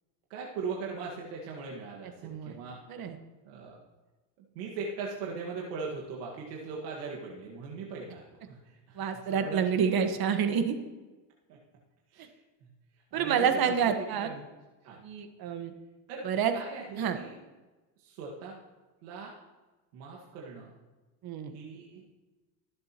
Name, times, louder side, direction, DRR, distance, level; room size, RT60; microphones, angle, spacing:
voice 1, 0.3-2.8 3.4-3.8 4.5-9.8 11.5-11.6 12.1-12.3 12.6-12.7 13.1-14.4 14.8-15.0 16.1-17.4 18.0-18.6 19.0-19.4 19.9-20.7 21.5-22.1, right 4 dB, 85° right, -3 dB, 1.9 m, -40 dB
voice 2, 2.2-2.6 2.9-3.2 9.0-10.7 13.1-14.3 15.0-15.7 16.2-16.5 17.0-17.2 21.2-21.5, right 7 dB, 50° right, 7 dB, 1.5 m, -28 dB
22.5 x 7.6 x 3.0 m, 1.2 s
supercardioid pair, 105°, 46 cm